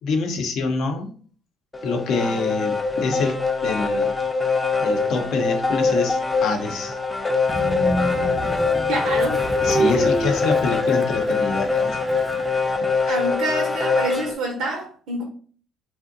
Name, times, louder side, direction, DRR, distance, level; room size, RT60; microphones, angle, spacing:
voice 1, 0.0-1.1 1.8-4.1 4.8-7.0 9.6-12.0 13.0-13.2, left 4 dB, 70° left, 4 dB, 0.6 m, -26 dB
sound 1, 1.7-14.4, left 4 dB, 20° left, 0.4 m, -23 dB
Train, 7.5-12.8, right 2 dB, 35° right, 0.4 m, -29 dB
voice 2, 8.9-9.4 9.8-10.1 13.1-15.2, right 2 dB, 80° right, -1 dB, 0.6 m, -27 dB
2.6 x 2.1 x 2.5 m, 0.44 s
supercardioid pair, 65°, 0 cm